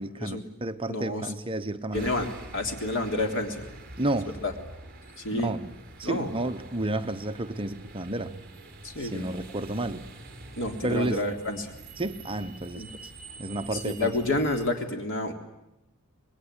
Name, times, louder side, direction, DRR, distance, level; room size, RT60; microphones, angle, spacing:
voice 1, 0.0-2.1 4.0-4.3 5.3-5.7 6.0-8.4 9.0-10.1 10.8-11.2 12.0-13.1 13.4-14.1, right 1 dB, 25° right, 8 dB, 1.0 m, -31 dB
voice 2, 0.9-1.3 1.9-2.3 2.5-3.7 4.4-4.5 5.2-5.5 6.0-6.3 8.8-9.3 10.6-11.7 12.8-12.9 13.7-15.3, left 2 dB, 60° left, 4 dB, 3.5 m, -29 dB
sound 1, 1.9-14.7, right 2 dB, 45° right, 4.6 m, -46 dB
26.0 x 21.0 x 10.0 m, 0.88 s
head